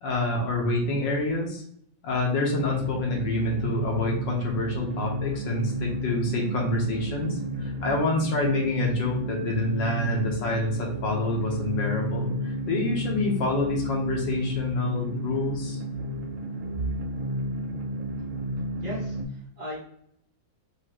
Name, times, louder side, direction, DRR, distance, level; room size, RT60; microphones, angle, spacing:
voice 1, 0.0-1.6 2.0-15.8, left 2 dB, 70° left, -1 dB, 1.6 m, -27 dB
sound 1, 2.5-19.2, equal, 75° right, 0.7 m, -32 dB
voice 2, 18.8-19.8, equal, 45° right, -6 dB, 1.5 m, -37 dB
4.8 x 2.7 x 2.9 m, 0.67 s
omnidirectional pair, 2.2 m